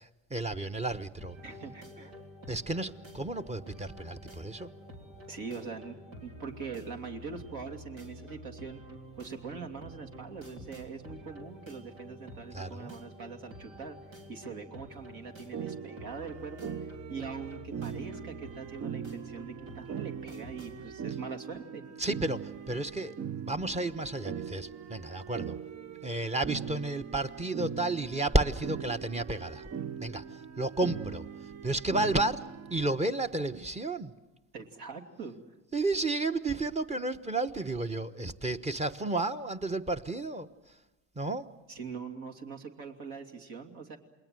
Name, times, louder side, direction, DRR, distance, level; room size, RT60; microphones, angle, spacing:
voice 1, 0.0-1.4 2.5-4.7 12.5-13.0 22.0-25.6 26.0-29.7 30.0-30.2 30.6-31.3 31.6-32.4 32.7-34.1 35.7-40.5 41.2-41.4, right 2 dB, 15° right, 8 dB, 1.1 m, -32 dB
sound 1, 1.2-20.9, equal, 90° right, 3.7 m, -49 dB
voice 2, 1.4-2.1 5.3-8.8 9.2-14.0 14.3-21.8 34.5-35.4 41.7-44.0, right 5 dB, 60° right, 4 dB, 2.9 m, -42 dB
sound 2, 15.5-33.0, right 8 dB, 40° right, 0.8 m, -41 dB
28.5 x 21.0 x 7.8 m, 1.1 s
hypercardioid pair, 75°, 38 cm